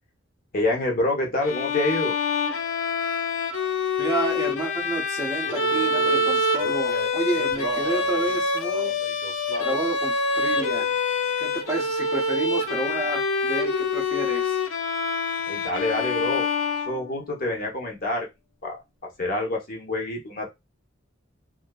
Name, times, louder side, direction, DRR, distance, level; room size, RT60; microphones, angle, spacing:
voice 1, 0.5-2.1 15.5-16.5 16.8-18.3 18.6-18.8 19.2-20.5, left 2 dB, 45° left, 1 dB, 0.8 m, -26 dB
Bowed string instrument, 1.4-17.4, left 3 dB, 75° left, 0.4 m, -26 dB
voice 2, 4.0-9.0 9.6-10.9 11.4-14.6, right 2 dB, 15° right, 0 dB, 0.5 m, -30 dB
Male singing, 5.4-9.8 10.5-11.0 11.6-11.9 12.1-13.1, right 2 dB, 70° right, 0.5 m, -38 dB
2.5 x 2.3 x 2.2 m, 0.21 s
head